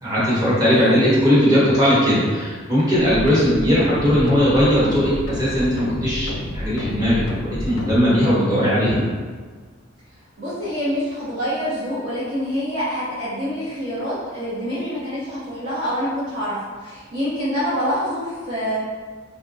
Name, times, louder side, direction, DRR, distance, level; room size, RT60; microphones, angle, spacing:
voice 1, 0.0-9.0, equal, 20° right, -8 dB, 1.0 m, -18 dB
voice 2, 0.7-1.0 3.4-3.6 10.4-18.8, equal, 55° right, -12 dB, 0.8 m, -26 dB
sound 1, 3.0-8.0, left 1 dB, 85° left, 0.4 m, -30 dB
3.6 x 2.1 x 2.5 m, 1.5 s
head